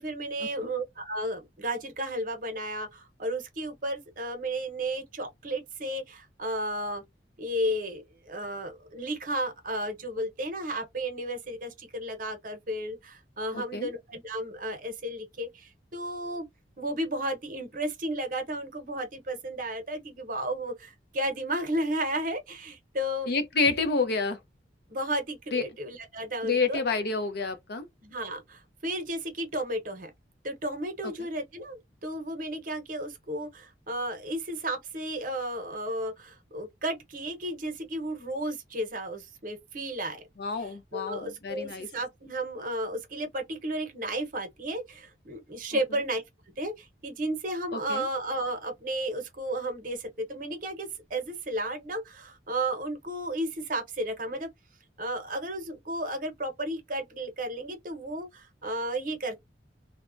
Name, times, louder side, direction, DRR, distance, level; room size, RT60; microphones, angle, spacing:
voice 1, 0.0-7.0 7.4-16.4 16.8-23.3 24.9-26.8 28.0-30.1 30.4-40.2 40.5-46.2 46.6-54.5 55.0-59.3, right 1 dB, 50° right, 0.8 m, -33 dB
voice 2, 13.5-13.9 23.3-24.4 25.5-25.6 26.4-27.9 31.0-31.1 40.4-41.9 47.7-48.0, left 4 dB, 60° left, 0.6 m, -29 dB
3.1 x 2.1 x 2.5 m
head